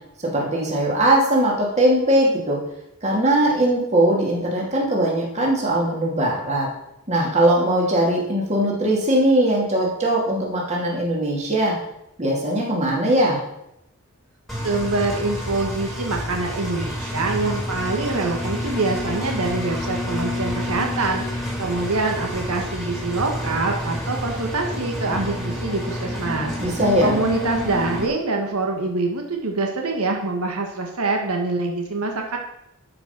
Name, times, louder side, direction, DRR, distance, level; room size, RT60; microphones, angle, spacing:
voice 1, 0.2-2.6 3.0-6.7 7.1-11.8 12.2-13.4 26.6-27.2, right 1 dB, 30° right, -2 dB, 2.7 m, -20 dB
Engine, 14.5-28.1, left 1 dB, ahead, 2.5 m, -29 dB
voice 2, 14.6-26.5 27.0-32.4, right 3 dB, 85° right, 2 dB, 1.5 m, -25 dB
12.0 x 5.5 x 6.0 m, 0.81 s
head